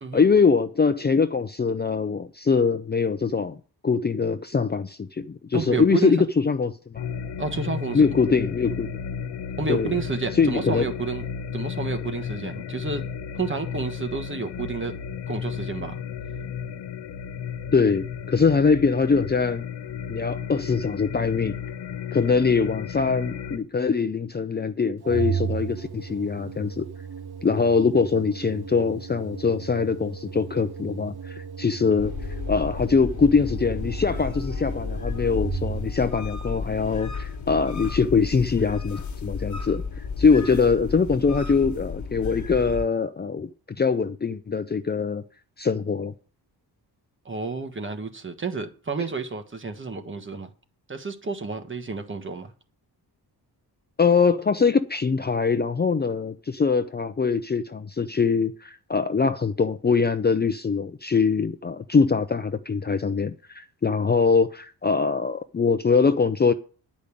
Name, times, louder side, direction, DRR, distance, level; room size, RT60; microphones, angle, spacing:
voice 1, 0.1-3.6 3.8-7.0 7.9-8.9 9.7-9.9 10.3-10.9 17.7-19.7 20.1-21.6 22.1-26.9 27.4-32.1 32.5-39.8 40.2-43.5 43.8-45.2 45.6-46.1 54.0-66.5, left 5 dB, 25° left, 0.6 m, -23 dB
voice 2, 5.5-6.2 7.4-8.1 9.6-11.2 11.5-13.0 13.3-14.9 15.3-16.0 47.2-50.5 50.9-52.5, right 4 dB, 30° right, 1.3 m, -30 dB
sound 1, 7.0-23.6, left 7 dB, 85° left, 1.1 m, -34 dB
Organ, 25.0-36.1, right 7 dB, 65° right, 1.6 m, -35 dB
sound 2, 32.0-42.9, left 5 dB, 45° left, 1.7 m, -33 dB
10.0 x 5.3 x 8.4 m
wide cardioid pair, 135°, 40 cm